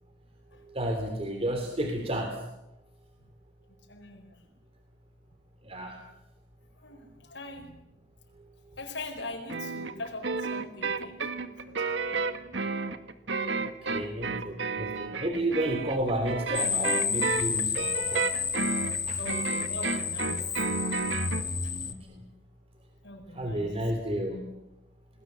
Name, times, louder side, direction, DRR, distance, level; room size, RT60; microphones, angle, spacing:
voice 1, 0.7-2.4 5.6-6.0 13.8-18.3 19.1-19.2 20.4-20.5 21.8-22.3 23.3-24.6, right 1 dB, 35° right, 4 dB, 3.3 m, -31 dB
voice 2, 3.9-4.4 6.8-7.8 8.8-12.5 13.8-14.3 19.2-20.4 21.6-21.8 23.0-23.7, left 2 dB, 70° left, 2 dB, 4.8 m, -42 dB
sound 1, 9.5-21.5, right 4 dB, 80° right, 1.8 m, -32 dB
sound 2, 16.5-21.9, left 6 dB, 25° left, 1.7 m, -31 dB
28.5 x 20.0 x 8.2 m, 0.93 s
head